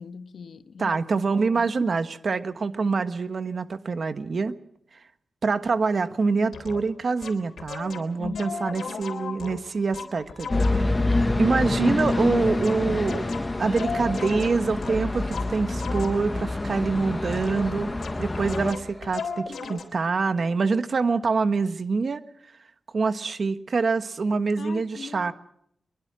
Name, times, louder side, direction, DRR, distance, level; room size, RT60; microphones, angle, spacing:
voice 1, 0.0-1.0 1.3-1.7 8.2-8.7 24.6-25.3, left 5 dB, 70° left, 1.0 m, -40 dB
voice 2, 0.8-4.5 4.9-5.0 5.4-11.0 11.4-13.3 13.5-17.9 18.2-22.2 22.9-25.3, right 4 dB, 50° right, 1.3 m, -25 dB
sound 1, 6.5-6.8 7.2-10.9 12.0-16.4 17.3-17.8 18.0-19.8, left 5 dB, 85° left, 3.5 m, -36 dB
sound 2, 9.7-19.2, right 1 dB, 15° right, 3.2 m, -50 dB
sound 3, 10.5-18.7, left 2 dB, 20° left, 1.1 m, -26 dB
23.5 x 22.5 x 6.2 m
wide cardioid pair, 155°, 0 cm